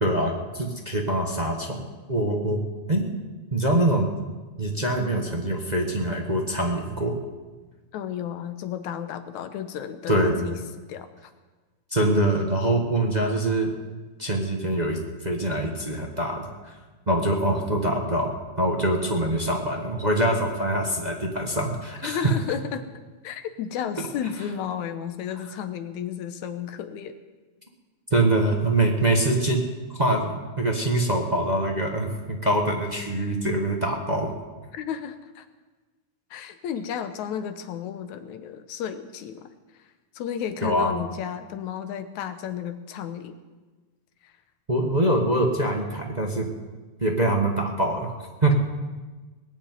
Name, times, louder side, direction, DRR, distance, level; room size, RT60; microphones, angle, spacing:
voice 1, 0.0-2.6 2.9-3.1 3.5-4.1 4.6-7.2 10.1-10.3 11.9-13.7 14.2-16.7 17.1-22.3 28.1-29.6 30.0-34.3 40.6-40.9 44.7-46.5 47.0-48.1 48.4-48.5, right 1 dB, 30° right, 1 dB, 0.7 m, -24 dB
voice 2, 7.9-10.6 10.9-11.3 22.0-22.8 23.2-27.2 34.7-35.5 36.3-39.5 40.1-43.4 44.2-44.3, left 8 dB, 80° left, 10 dB, 2.3 m, -33 dB
20.0 x 7.3 x 9.5 m, 1.3 s
omnidirectional pair, 3.4 m